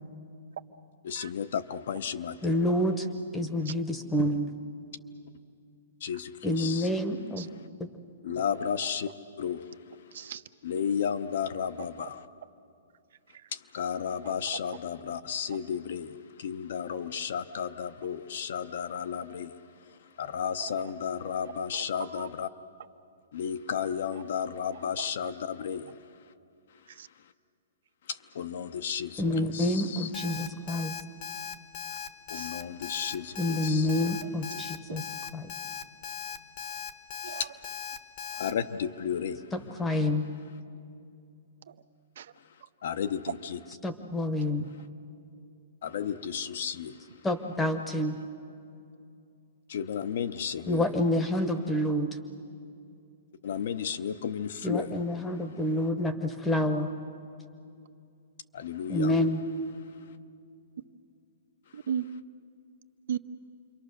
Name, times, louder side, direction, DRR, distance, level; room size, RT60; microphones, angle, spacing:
voice 1, 1.0-2.5 6.0-6.9 8.2-9.1 9.4-9.6 10.6-12.2 13.5-19.5 20.2-22.5 23.3-25.9 28.1-30.1 32.3-33.9 37.4-37.5 38.4-39.4 42.8-43.6 45.8-47.0 49.7-50.8 53.4-54.9 58.5-59.2, left 7 dB, 50° left, 10 dB, 0.8 m, -33 dB
voice 2, 2.4-3.1 3.3-4.5 6.4-7.5 29.2-31.0 33.4-35.1 35.3-35.5 39.5-40.3 43.8-44.7 47.2-48.2 50.7-52.2 54.6-56.9 58.9-59.4, left 1 dB, 5° left, 7 dB, 1.0 m, -28 dB
voice 3, 10.1-10.4 12.0-12.1 13.3-13.5 14.2-14.3 20.7-20.9 21.4-22.3 24.7-25.3 26.9-27.1 32.3-32.5 34.2-34.6 34.9-35.0 37.2-37.5 38.3-38.5 41.7-41.8 42.2-42.3 43.3-43.4 44.6-44.7 61.7-62.0 63.1-63.2, right 8 dB, 60° right, 10 dB, 0.7 m, -38 dB
Alarm, 30.1-38.5, left 7 dB, 30° left, 1.0 m, -38 dB
28.0 x 23.5 x 6.6 m, 2.5 s
hypercardioid pair, 175°, 0 cm